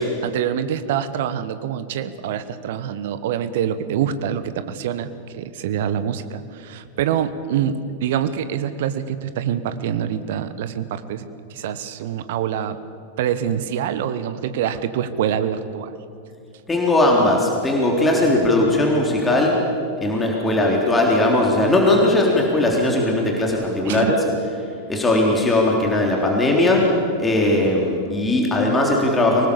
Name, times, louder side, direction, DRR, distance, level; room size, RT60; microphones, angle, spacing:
voice 1, 0.2-11.2 11.5-12.8 13.2-15.9 23.9-24.2, right 9 dB, 55° right, 12 dB, 1.2 m, -25 dB
voice 2, 16.7-19.6 20.0-24.2 24.9-29.5, left 2 dB, 15° left, -1 dB, 3.6 m, -18 dB
24.5 x 19.5 x 7.1 m, 2.5 s
figure-of-eight pair, 90°, 0 cm